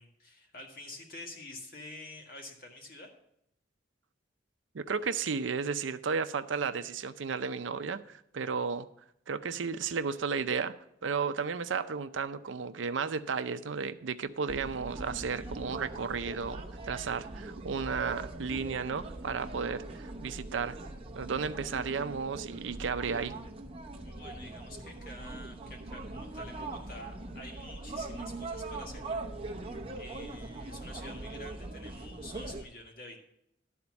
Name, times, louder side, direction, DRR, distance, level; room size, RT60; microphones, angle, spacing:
voice 1, 0.0-3.1 24.0-33.2, left 2 dB, 50° left, 2 dB, 1.7 m, -48 dB
voice 2, 4.7-8.9 9.3-10.8 11.0-20.8 21.2-23.4, right 5 dB, 85° right, 11 dB, 0.6 m, -33 dB
sound 1, 14.5-32.6, right 2 dB, 30° right, 0.8 m, -41 dB
12.5 x 4.3 x 7.1 m, 0.76 s
head